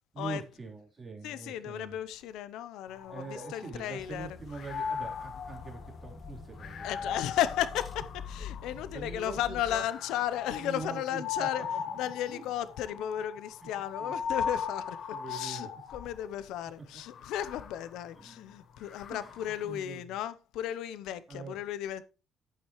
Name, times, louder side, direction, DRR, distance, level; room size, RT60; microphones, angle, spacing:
voice 1, 0.1-2.0 3.1-7.3 8.9-9.8 10.5-11.8 12.3-12.4 12.9-13.0 14.0-14.1 15.1-15.7 18.1-18.6 19.1-19.4 19.6-20.0 21.3-21.6, right 4 dB, 25° right, 3.5 m, -43 dB
voice 2, 1.2-4.4 6.8-11.7 11.9-22.0, left 11 dB, 90° left, 0.7 m, -35 dB
sound 1, 2.9-4.1 4.5-8.9 9.6-16.3 17.0-19.6, left 6 dB, 55° left, 1.4 m, -39 dB
sound 2, 4.0-9.8, left 5 dB, 30° left, 1.6 m, -46 dB
11.5 x 8.7 x 3.1 m
cardioid pair, 130°, 0 cm